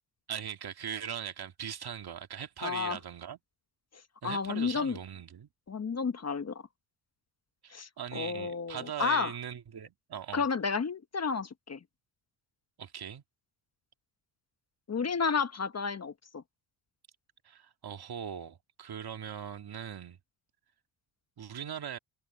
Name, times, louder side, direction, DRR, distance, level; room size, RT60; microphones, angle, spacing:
voice 1, 0.3-3.4 4.2-5.5 7.6-10.4 12.8-13.2 17.4-20.2 21.4-22.0, right 8 dB, 50° right, 2.2 m, -40 dB
voice 2, 2.6-3.0 4.2-5.0 5.7-6.6 7.7-9.3 10.3-11.8 14.9-16.4, left 5 dB, 30° left, 1.3 m, -31 dB
supercardioid pair, 70°, 48 cm